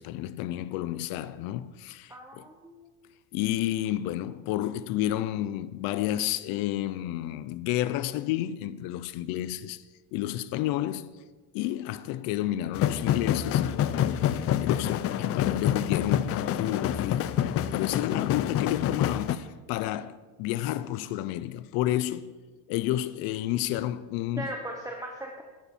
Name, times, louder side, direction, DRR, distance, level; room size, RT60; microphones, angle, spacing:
voice 1, 0.0-2.5 3.3-9.8 10.1-11.2 11.5-22.4 22.7-24.5, left 13 dB, 75° left, 0.8 m, -31 dB
voice 2, 2.1-2.9 24.4-25.4, right 1 dB, 10° right, 1.1 m, -38 dB
sound 1, 12.7-19.4, left 10 dB, 40° left, 0.6 m, -27 dB
14.0 x 11.5 x 4.5 m
cardioid pair, 135°, 36 cm